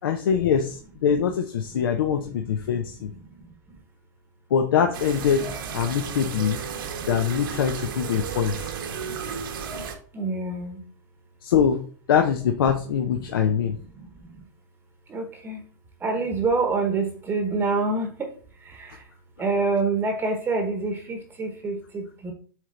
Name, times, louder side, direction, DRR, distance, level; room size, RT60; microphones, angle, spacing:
voice 1, 0.0-3.1 4.5-5.5 5.7-6.6 7.1-8.7 11.4-11.8 12.1-13.8, left 7 dB, 85° left, 5 dB, 0.7 m, -23 dB
voice 2, 2.7-3.8 6.7-7.1 8.6-9.2 10.1-10.8 13.5-14.5 15.1-15.6 16.0-19.1 19.4-22.3, right 3 dB, 20° right, 5 dB, 0.9 m, -28 dB
sound 1, 4.9-9.9, right 6 dB, 80° right, 1.2 m, -33 dB
7.4 x 3.4 x 3.8 m, 0.42 s
supercardioid pair, 135°, 11 cm